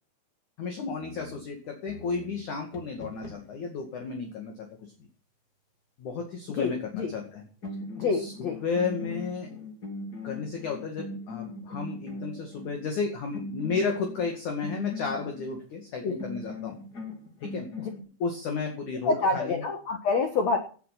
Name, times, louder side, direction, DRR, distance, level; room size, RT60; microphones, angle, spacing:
voice 1, 0.6-4.7 6.0-7.4 8.1-9.5 10.2-16.8 17.4-17.7 18.2-19.6, left 5 dB, 50° left, 3 dB, 2.9 m, -33 dB
sound 1, 1.0-3.7 7.2-7.4 7.6-12.8 13.3-15.6 16.2-18.0, left 2 dB, 25° left, 2.9 m, -40 dB
voice 2, 6.5-7.1 8.0-8.6 16.0-16.1 17.8-17.9 19.0-20.6, left 4 dB, 90° left, 5 dB, 1.5 m, -27 dB
17.5 x 8.6 x 5.9 m, 0.41 s
omnidirectional pair, 5.7 m